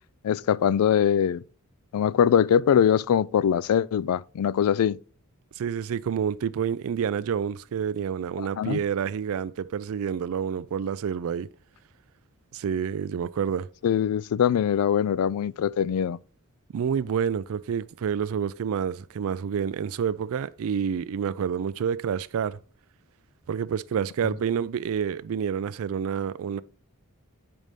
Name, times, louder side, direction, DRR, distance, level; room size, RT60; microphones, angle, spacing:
voice 1, 0.2-1.4 1.9-5.0 8.4-8.8 13.8-16.2, left 8 dB, 70° left, 0.3 m, -22 dB
voice 2, 5.6-11.5 12.5-13.7 16.7-22.6 23.5-26.6, right 7 dB, 65° right, 0.3 m, -28 dB
8.8 x 5.2 x 3.2 m
head